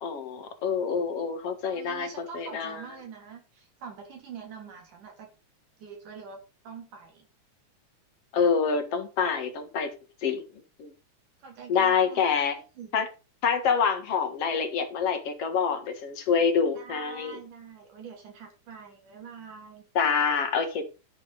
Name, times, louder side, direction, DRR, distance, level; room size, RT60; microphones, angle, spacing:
voice 1, 0.0-2.1 2.3-2.8 8.3-9.9 10.2-10.4 10.8-10.9 11.7-12.6 12.9-13.1 13.4-17.4 20.0-20.9, left 6 dB, 55° left, 2.3 m, -26 dB
voice 2, 1.6-5.3 5.8-7.3 11.4-12.3 12.5-12.9 16.7-19.8, right 6 dB, 90° right, 4.8 m, -45 dB
12.0 x 7.0 x 5.0 m
omnidirectional pair, 3.5 m